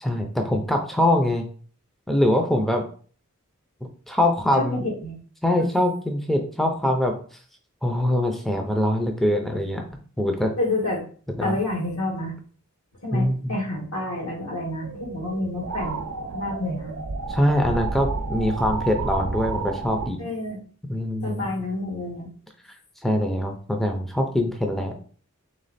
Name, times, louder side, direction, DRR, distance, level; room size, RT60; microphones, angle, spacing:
voice 1, 0.0-1.5 2.1-2.8 3.8-4.8 5.4-7.1 7.8-9.8 10.2-10.5 11.4-11.6 13.1-13.6 17.3-20.2 20.9-21.5 23.0-25.0, left 1 dB, ahead, 3 dB, 0.4 m, -23 dB
voice 2, 4.6-5.1 5.5-5.7 10.6-11.0 11.4-12.3 13.0-16.0 16.3-17.0 20.2-20.6 21.2-22.3, left 2 dB, 85° left, -2 dB, 1.8 m, -29 dB
sound 1, 14.8-20.1, right 3 dB, 85° right, 0.6 m, -31 dB
3.5 x 3.2 x 4.0 m, 0.44 s
head